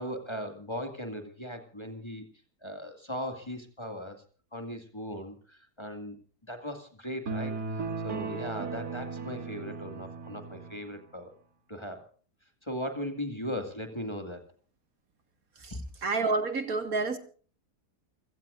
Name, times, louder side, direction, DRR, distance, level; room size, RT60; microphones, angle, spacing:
voice 1, 0.0-2.3 2.6-4.2 4.5-6.2 6.5-11.3 11.7-12.1 12.6-14.4 15.7-15.8, equal, 15° left, 6 dB, 2.1 m, -38 dB
sound 1, 7.3-10.8, right 4 dB, 85° right, 2.6 m, -36 dB
voice 2, 16.0-17.2, right 3 dB, 60° right, 8 dB, 2.1 m, -29 dB
28.0 x 17.0 x 2.5 m, 0.43 s
omnidirectional pair, 1.7 m